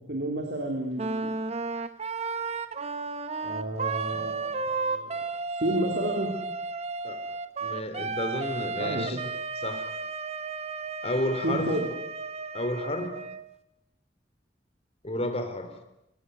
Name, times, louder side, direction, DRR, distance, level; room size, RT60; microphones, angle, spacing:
voice 1, 0.1-1.3 3.4-5.2 5.5-6.3 8.8-9.2 11.4-11.9, right 1 dB, 65° right, 3 dB, 3.5 m, -31 dB
Wind instrument woodwind instrument, 0.9-13.4, right 4 dB, 35° right, 1.3 m, -33 dB
voice 2, 7.6-9.2 9.6-9.9 11.0-11.8 12.5-13.2 15.0-15.8, left 1 dB, 35° left, 8 dB, 3.3 m, -31 dB
24.0 x 18.5 x 9.5 m, 0.85 s
head